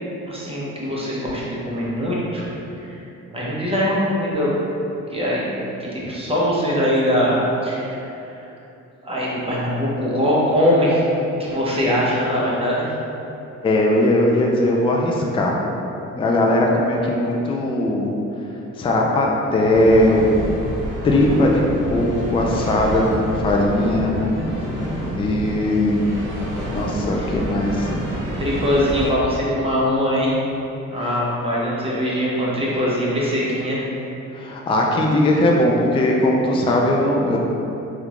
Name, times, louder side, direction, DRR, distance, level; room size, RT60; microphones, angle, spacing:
voice 1, 0.3-2.4 2.8-3.0 3.3-4.5 5.1-8.0 9.0-11.0 11.4-12.9 27.1-27.3 28.4-30.3 30.9-33.8, equal, 20° right, -6 dB, 0.8 m, -22 dB
voice 2, 13.6-15.6 16.1-18.1 18.8-20.4 21.0-21.6 21.9-24.2 25.1-26.2 26.7-27.9 31.0-31.1 34.3-37.4, left 1 dB, 20° left, -1 dB, 0.3 m, -19 dB
sound 1, 19.7-29.1, equal, 70° right, 1.0 m, -28 dB
3.5 x 2.4 x 2.9 m, 2.9 s
cardioid pair, 90°, 30 cm